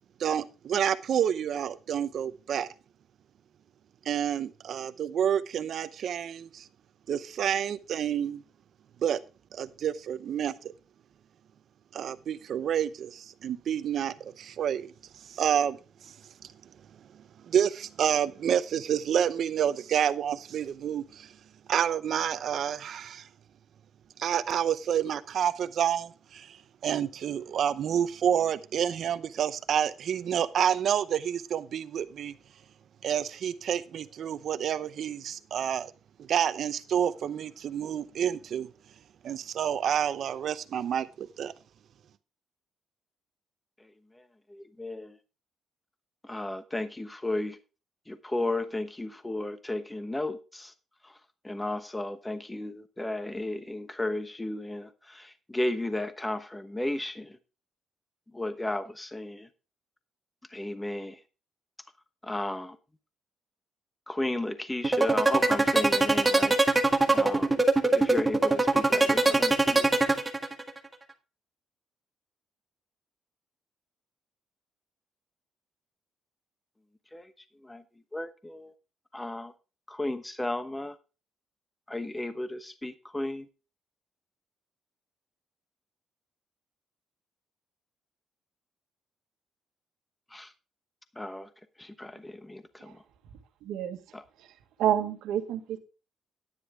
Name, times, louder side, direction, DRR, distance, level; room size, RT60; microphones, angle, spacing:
voice 1, 0.2-2.7 4.0-6.7 7.1-8.4 9.0-9.2 9.5-10.7 11.9-14.9 15.3-15.8 16.1-16.2 17.5-21.3 21.7-23.3 24.2-32.3 33.0-35.9 36.2-38.7 39.2-41.5, right 9 dB, 65° right, 0.7 m, -29 dB
voice 2, 43.8-44.2 44.5-45.2 46.2-47.6 48.1-50.7 51.0-51.2 51.4-57.4 58.3-59.5 60.5-61.2 62.2-62.8 64.1-66.6 67.1-67.6 67.9-69.9 77.1-77.3 77.6-77.8 78.1-78.7 79.1-79.5 79.9-81.0 81.9-83.5 90.3-90.5 91.1-91.5 91.8-93.0 94.1-94.2, left 1 dB, 10° left, 1.1 m, -34 dB
sound 1, 64.8-70.8, right 3 dB, 15° right, 1.8 m, -22 dB
voice 3, 93.6-94.0 94.8-95.8, right 10 dB, 90° right, 1.4 m, -28 dB
9.9 x 9.9 x 3.6 m
cardioid pair, 90°, 0 cm